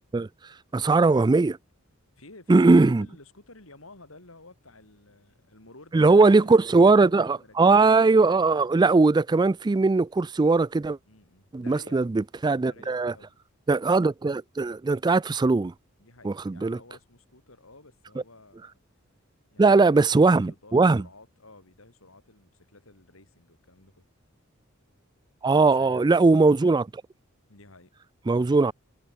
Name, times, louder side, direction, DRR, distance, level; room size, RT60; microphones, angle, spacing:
voice 1, 0.7-1.6 2.5-3.1 5.9-11.0 11.5-13.1 13.7-15.7 16.2-16.8 19.6-21.0 25.4-26.9 28.3-28.7, right 3 dB, 20° right, 0.3 m, -20 dB
voice 2, 2.2-8.0 11.1-12.2 12.6-13.3 16.0-18.8 19.5-24.1 25.5-26.3 27.5-27.9, left 2 dB, 75° left, 5.0 m, -52 dB
head